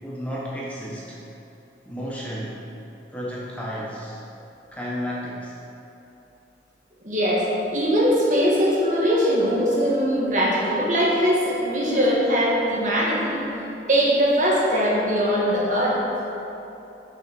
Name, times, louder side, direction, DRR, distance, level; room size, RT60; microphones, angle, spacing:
voice 1, 0.0-1.2 1.9-2.6 3.1-4.2 4.7-5.6, equal, 10° left, -6 dB, 0.8 m, -32 dB
voice 2, 7.0-13.4 13.9-16.0, equal, 45° right, -5 dB, 1.6 m, -21 dB
6.1 x 5.6 x 6.0 m, 2.9 s
head